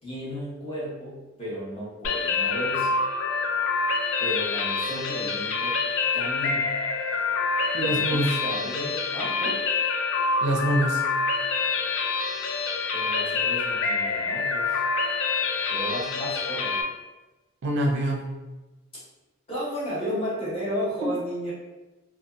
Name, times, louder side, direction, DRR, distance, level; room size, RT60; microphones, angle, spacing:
voice 1, 0.0-3.0 4.2-5.8 6.1-6.8 7.8-9.7 12.9-14.8 15.7-16.8 19.5-21.5, equal, 25° left, -9 dB, 1.0 m, -33 dB
sound 1, 2.0-16.8, left 4 dB, 60° left, 0.3 m, -26 dB
voice 2, 7.7-8.3 10.4-11.0 17.6-18.3, right 1 dB, 55° right, -1 dB, 0.4 m, -25 dB
2.6 x 2.2 x 2.3 m, 1.1 s
head